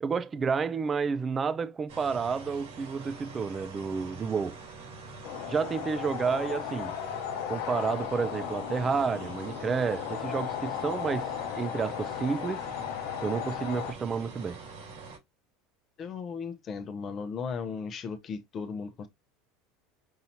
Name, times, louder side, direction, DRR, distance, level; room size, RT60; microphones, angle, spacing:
voice 1, 0.0-4.6 5.5-7.0 7.5-12.7 13.2-14.6, right 5 dB, 20° right, 0.3 m, -30 dB
sound 1, 1.9-15.2, right 3 dB, 85° right, 3.0 m, -45 dB
sound 2, 5.2-13.9, left 10 dB, 65° left, 0.8 m, -36 dB
voice 2, 16.0-19.1, left 5 dB, 30° left, 0.8 m, -36 dB
5.6 x 2.8 x 2.7 m
supercardioid pair, 145°, 0 cm